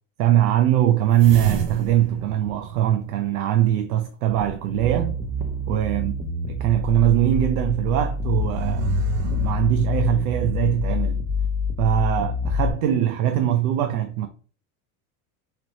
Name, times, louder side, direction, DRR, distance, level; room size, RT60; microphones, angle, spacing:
voice 1, 0.2-5.2 5.7-6.2 6.5-11.3 11.8-14.3, right 11 dB, 90° right, 0.6 m, -21 dB
sound 1, 1.1-3.6 4.3-5.9 6.5-6.6 8.1-10.6, right 7 dB, 55° right, 0.7 m, -31 dB
sound 2, 4.7-12.7, left 4 dB, 5° right, 0.6 m, -26 dB
3.2 x 2.9 x 4.0 m
supercardioid pair, 115°, 42 cm